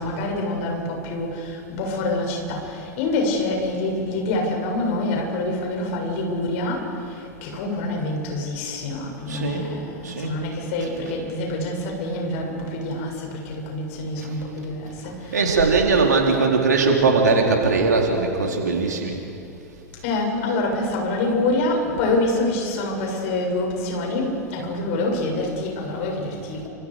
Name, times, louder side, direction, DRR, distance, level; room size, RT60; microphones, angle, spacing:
voice 1, 0.0-15.8 20.0-26.7, left 2 dB, 55° left, 0 dB, 7.5 m, -26 dB
voice 2, 9.3-9.7 10.0-10.3 14.2-14.3 15.3-19.2, right 4 dB, 75° right, 0 dB, 4.4 m, -20 dB
30.0 x 27.5 x 5.2 m, 2.7 s
figure-of-eight pair, 95°, 9 cm